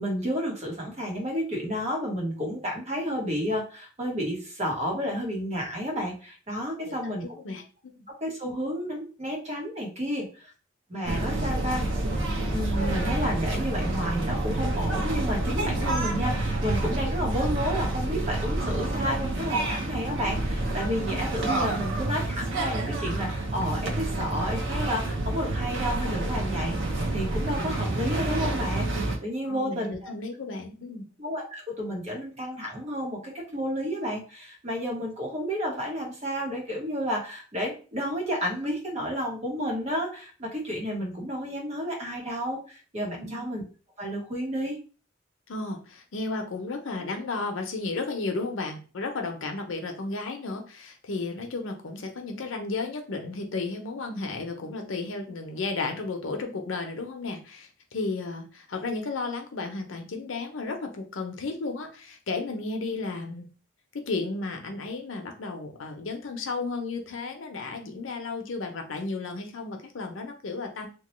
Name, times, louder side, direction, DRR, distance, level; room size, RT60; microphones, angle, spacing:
voice 1, 0.0-7.2 8.2-10.5 10.9-11.8 12.5-26.8 27.1-30.1 31.2-43.6 44.0-44.8, equal, 35° right, -1 dB, 1.0 m, -31 dB
voice 2, 7.4-8.1 29.5-31.0 43.2-43.4 45.5-63.5 64.1-70.9, left 3 dB, 90° left, 4 dB, 0.7 m, -33 dB
sound 1, 11.0-29.2, right 2 dB, 65° right, 0.7 m, -28 dB
3.0 x 2.2 x 3.0 m, 0.36 s
head